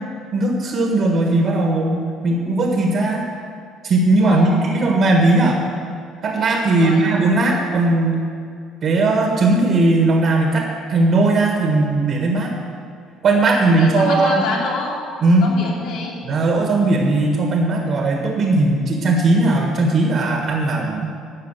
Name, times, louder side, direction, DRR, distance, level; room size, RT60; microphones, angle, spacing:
voice 1, 0.3-2.0 2.2-3.2 3.8-5.6 6.2-8.2 8.8-12.5 13.2-14.4 15.2-15.5 16.2-21.1, right 2 dB, 45° right, 1 dB, 1.6 m, -17 dB
voice 2, 4.2-4.6 6.7-7.0 13.6-15.0 15.4-16.2, left 3 dB, 80° left, -3 dB, 2.9 m, -27 dB
12.5 x 5.4 x 8.9 m, 2.2 s
cardioid pair, 130°, 0 cm